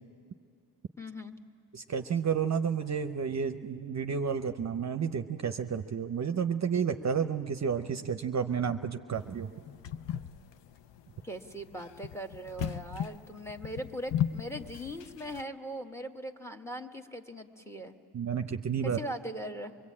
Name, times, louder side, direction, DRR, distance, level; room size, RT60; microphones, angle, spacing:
voice 1, 1.0-1.3 11.2-18.0 18.8-19.7, equal, 5° left, 5 dB, 1.2 m, -40 dB
voice 2, 1.7-9.5 18.1-19.0, right 7 dB, 40° right, 8 dB, 0.7 m, -31 dB
sound 1, 9.1-15.4, left 10 dB, 80° left, 0.7 m, -37 dB
25.0 x 21.5 x 8.6 m, 2.3 s
cardioid pair, 80°, 41 cm